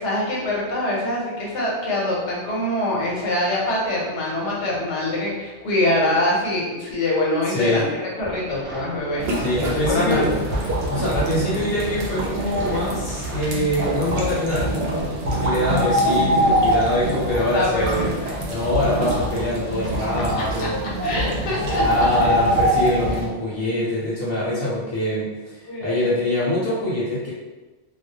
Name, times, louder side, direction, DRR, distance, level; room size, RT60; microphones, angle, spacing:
voice 1, 0.0-9.3 9.9-10.2 16.9-17.2 17.5-18.3 20.4-20.7 21.0-22.4 25.7-26.1, left 1 dB, 80° left, -4 dB, 1.0 m, -24 dB
voice 2, 7.5-7.8 9.3-10.3 10.9-18.0 18.5-20.9 21.4-25.3 25.5-27.3, left 1 dB, 60° left, -8 dB, 0.8 m, -24 dB
sound 1, 8.2-13.9, right 1 dB, 20° right, 0.3 m, -37 dB
sound 2, 9.2-23.3, equal, 70° right, 0.8 m, -24 dB
2.3 x 2.1 x 2.7 m, 1.2 s
omnidirectional pair, 1.2 m